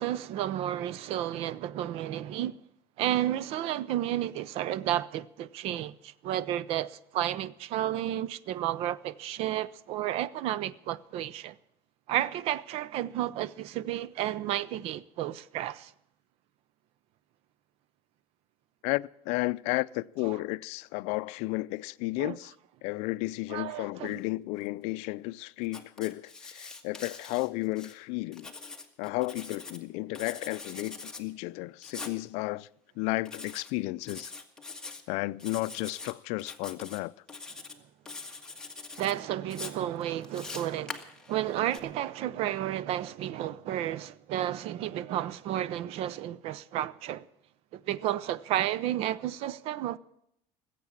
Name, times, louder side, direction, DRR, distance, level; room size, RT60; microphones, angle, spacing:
voice 1, 0.0-2.6 3.0-11.6 12.1-15.9 22.2-22.4 23.5-24.2 39.0-47.3 47.7-50.0, right 12 dB, 55° right, 0.7 m, -32 dB
voice 2, 18.8-22.5 22.8-28.5 29.0-32.7 33.0-34.3 35.1-37.1, left 21 dB, 65° left, 0.5 m, -33 dB
Writing, 25.6-27.9 28.3-29.8 30.1-31.2 31.8-32.2 33.3-33.7 34.0-35.0 35.4-36.1 36.4-37.0 37.3-37.8 38.1-39.1 39.5-41.8, left 3 dB, 5° left, 1.6 m, -43 dB
20.0 x 8.4 x 7.2 m
supercardioid pair, 125°, 12 cm